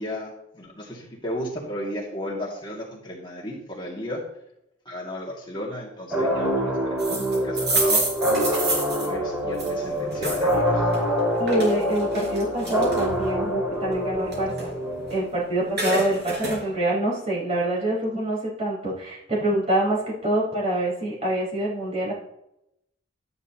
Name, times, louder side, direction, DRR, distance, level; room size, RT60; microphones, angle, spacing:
voice 1, 0.0-4.2 4.9-8.0 9.0-10.9, left 1 dB, 25° left, -3 dB, 2.2 m, -34 dB
sound 1, 6.1-15.6, equal, 10° right, 4.7 m, -25 dB
sound 2, 7.0-10.5 10.9-13.3 13.7-15.3 15.5-16.6, right 2 dB, 60° right, 4.6 m, -28 dB
voice 2, 11.4-14.7 15.1-22.1, right 1 dB, 35° right, -5 dB, 4.3 m, -25 dB
12.5 x 10.5 x 2.9 m, 0.81 s
head